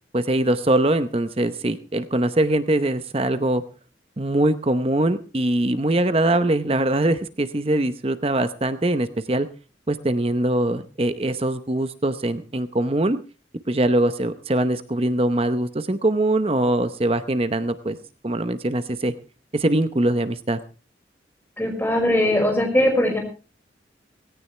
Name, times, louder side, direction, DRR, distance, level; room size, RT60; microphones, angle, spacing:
voice 1, 0.1-3.6 4.2-9.5 9.9-13.2 13.7-18.0 18.2-19.1 19.5-20.6, right 1 dB, 30° right, 11 dB, 0.7 m, -22 dB
voice 2, 21.6-23.2, left 1 dB, 10° left, 1 dB, 5.2 m, -20 dB
18.0 x 17.0 x 3.3 m, 0.33 s
head